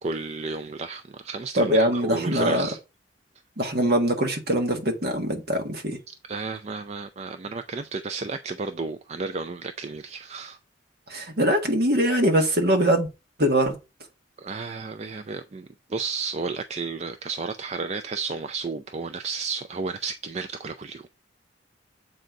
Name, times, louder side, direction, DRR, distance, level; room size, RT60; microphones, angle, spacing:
voice 1, 0.0-2.8 6.1-10.6 14.4-21.1, right 4 dB, 35° right, 0.4 m, -32 dB
voice 2, 1.6-2.7 3.6-6.0 11.1-13.1 13.4-13.8, right 1 dB, 55° right, 1.5 m, -22 dB
7.6 x 3.9 x 4.6 m
head